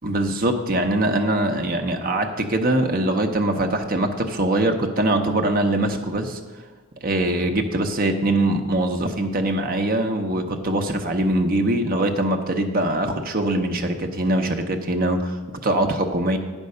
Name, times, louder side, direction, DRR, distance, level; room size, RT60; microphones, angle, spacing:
voice 1, 0.0-6.4 7.0-16.4, right 1 dB, 45° right, 5 dB, 0.8 m, -22 dB
9.4 x 5.3 x 6.6 m, 1.4 s
head